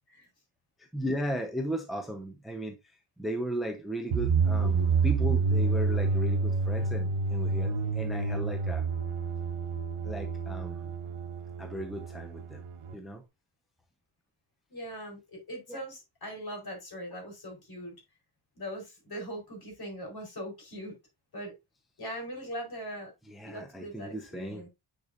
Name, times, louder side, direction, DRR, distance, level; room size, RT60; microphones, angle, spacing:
voice 1, 0.9-2.8 3.2-8.9 10.0-10.9 11.6-12.6 12.9-13.2 15.7-15.8 23.3-24.6, equal, ahead, 0.8 m, -36 dB
sound 1, 4.1-12.9, right 4 dB, 85° right, 1.0 m, -28 dB
voice 2, 14.7-17.9 18.5-21.0 21.3-21.5 22.0-23.1 23.4-24.7, equal, 45° left, 4.6 m, -40 dB
9.4 x 5.2 x 2.6 m
wide cardioid pair, 155°, 50 cm